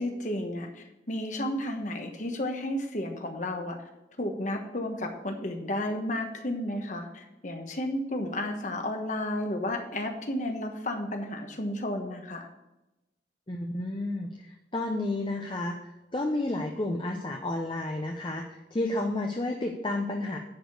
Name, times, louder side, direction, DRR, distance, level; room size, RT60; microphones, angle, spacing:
voice 1, 0.0-3.8 4.2-12.5, left 1 dB, 40° left, 5 dB, 1.2 m, -32 dB
voice 2, 13.5-20.4, left 2 dB, 25° left, 2 dB, 0.7 m, -31 dB
10.5 x 5.1 x 6.6 m, 0.97 s
head